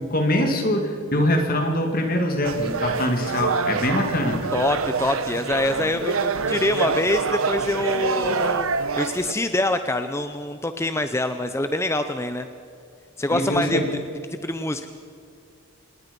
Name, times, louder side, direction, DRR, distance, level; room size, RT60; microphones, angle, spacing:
voice 1, 0.0-4.5 13.3-13.9, left 1 dB, 40° left, 4 dB, 2.3 m, -23 dB
sound 1, 2.4-9.3, right 4 dB, 80° right, 1.1 m, -26 dB
voice 2, 4.5-8.7 9.0-12.5 13.2-14.0 14.4-14.9, left 1 dB, 15° left, 9 dB, 0.6 m, -25 dB
26.5 x 20.5 x 5.4 m, 2.4 s
head